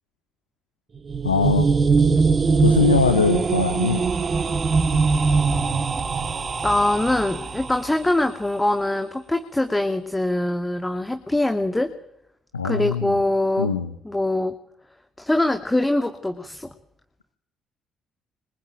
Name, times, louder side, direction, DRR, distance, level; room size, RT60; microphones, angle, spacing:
sound 1, 0.9-7.9, right 4 dB, 40° right, 2.6 m, -21 dB
voice 1, 1.2-1.7 2.6-4.1 12.5-13.2 13.6-13.9, left 4 dB, 90° left, 10 dB, 1.2 m, -21 dB
voice 2, 6.6-11.9 12.6-13.7 14.0-14.5 15.2-16.7, left 1 dB, 15° left, 7 dB, 2.3 m, -23 dB
26.5 x 24.5 x 9.0 m, 0.76 s
figure-of-eight pair, 45°, 0 cm